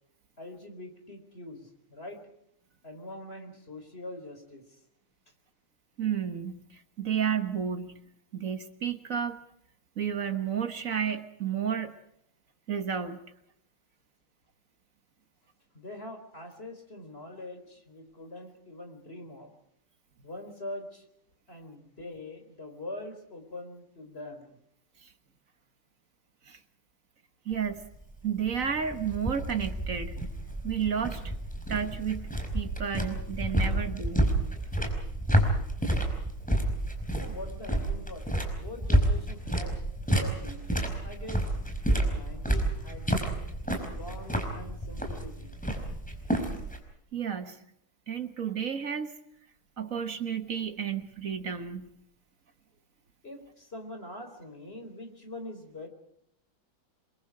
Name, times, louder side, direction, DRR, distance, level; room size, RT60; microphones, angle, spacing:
voice 1, 0.4-2.2 2.8-4.6 15.7-19.5 20.2-21.0 21.5-24.6 37.1-38.2 38.5-41.5 42.0-43.2 43.9-45.6 53.2-55.9, left 1 dB, 25° left, 6 dB, 4.4 m, -43 dB
voice 2, 6.0-8.0 8.3-9.4 10.0-12.0 12.7-13.2 25.0-25.1 26.4-26.6 27.4-27.8 28.2-30.2 30.6-31.3 31.7-34.3 47.1-47.6 48.1-49.2 49.8-51.9, right 8 dB, 45° right, 8 dB, 1.6 m, -32 dB
sound 1, 27.5-46.8, right 1 dB, 5° left, 4.7 m, -30 dB
29.0 x 23.0 x 4.8 m, 0.75 s
omnidirectional pair, 2.3 m